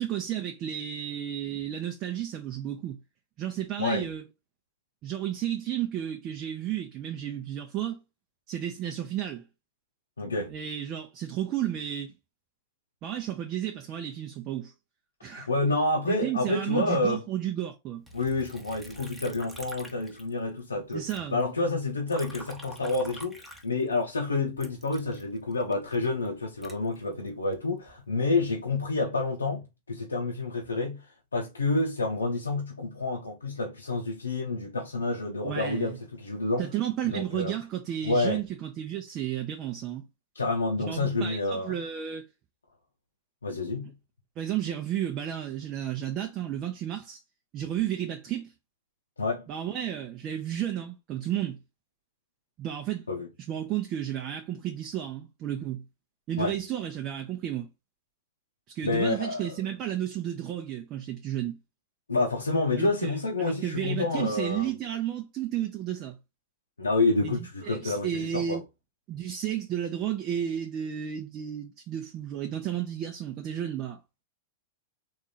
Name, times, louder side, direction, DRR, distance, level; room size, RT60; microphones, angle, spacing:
voice 1, 0.0-3.0 3.4-4.2 5.0-8.0 8.5-9.5 10.5-12.1 13.0-14.7 15.2-15.5 16.0-18.1 20.9-21.4 35.4-36.0 36.6-40.0 40.8-42.3 44.4-47.2 47.5-48.5 49.5-51.6 52.6-53.1 53.5-55.8 56.3-57.7 58.7-61.6 62.8-66.2 67.2-68.6 69.1-74.0, right 11 dB, 40° right, 0.6 m, -32 dB
voice 2, 10.2-10.5 15.2-17.2 18.1-21.0 21.3-29.6 29.9-31.0 31.3-36.7 37.0-37.5 38.0-38.4 40.3-41.8 43.4-43.9 49.2-49.4 53.1-53.3 56.4-56.5 58.8-59.5 62.1-64.7 66.8-68.6, left 3 dB, 90° left, 0.7 m, -28 dB
Liquid, 18.1-20.6 20.9-24.1 24.6-27.6 28.1-28.7, equal, ahead, 0.9 m, -47 dB
3.5 x 2.5 x 4.1 m
hypercardioid pair, 100°, 0 cm